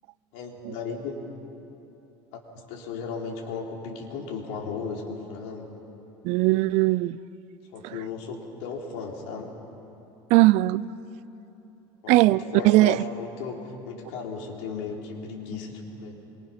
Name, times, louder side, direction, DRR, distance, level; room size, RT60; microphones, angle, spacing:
voice 1, 0.3-1.2 2.3-5.7 7.7-9.5 12.0-16.2, left 5 dB, 75° left, 0 dB, 3.7 m, -36 dB
voice 2, 6.2-7.2 7.8-7.9 10.3-10.9 12.1-13.0, right 18 dB, 60° right, 19 dB, 0.5 m, -19 dB
25.0 x 24.0 x 5.9 m, 3.0 s
cardioid pair, 140°, 13 cm